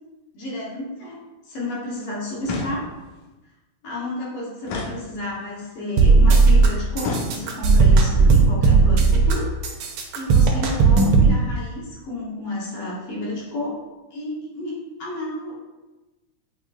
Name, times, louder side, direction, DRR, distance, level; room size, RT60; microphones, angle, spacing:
voice 1, 0.3-2.8 3.8-9.5 10.1-13.8 14.1-15.6, left 1 dB, 65° left, -5 dB, 1.5 m, -31 dB
sound 1, 2.4-3.2 4.6-5.6 7.0-7.8, left 2 dB, 85° left, 2.0 m, -32 dB
sound 2, 6.0-6.7 7.0-9.3 9.6-11.3, right 4 dB, 85° right, 1.3 m, -15 dB
7.3 x 2.8 x 2.3 m, 1.1 s
omnidirectional pair, 3.3 m